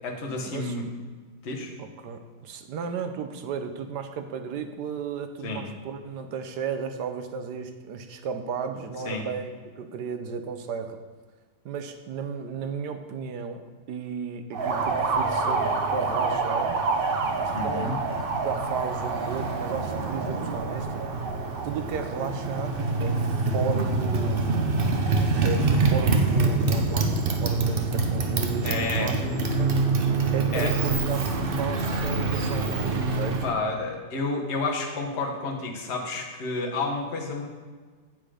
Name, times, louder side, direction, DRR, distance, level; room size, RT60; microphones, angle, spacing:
voice 1, 0.0-0.8 1.4-1.7 5.4-5.6 9.0-9.2 17.5-18.0 28.6-29.1 30.5-30.8 33.4-37.5, left 3 dB, 40° left, 0 dB, 1.4 m, -30 dB
voice 2, 1.8-11.0 11.6-16.8 17.4-18.0 18.3-21.0 21.6-23.2 23.5-24.7 25.4-29.2 29.6-29.7 30.3-31.3 31.6-33.5, right 6 dB, 70° right, 8 dB, 1.2 m, -34 dB
Motorcycle, 14.5-33.5, right 3 dB, 55° right, 0.6 m, -25 dB
8.0 x 7.6 x 5.0 m, 1.4 s
omnidirectional pair, 2.0 m